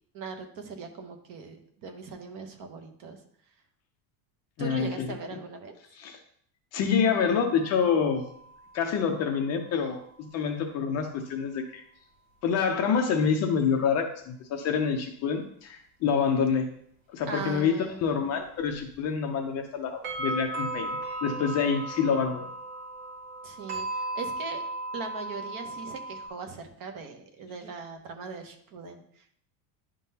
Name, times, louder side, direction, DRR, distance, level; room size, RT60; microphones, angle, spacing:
voice 1, 0.1-3.2 4.6-5.7 17.2-18.1 23.4-24.6 24.9-29.4, right 4 dB, 40° right, 6 dB, 0.9 m, -40 dB
voice 2, 4.6-5.4 5.9-6.2 6.7-8.3 8.7-11.8 12.4-16.7 17.1-22.4, left 6 dB, 35° left, 4 dB, 0.5 m, -27 dB
sound 1, 7.3-9.4 18.8-18.9 20.0-26.3, right 2 dB, 60° right, 2.5 m, -36 dB
10.5 x 3.8 x 2.8 m, 0.64 s
cardioid pair, 165°, 49 cm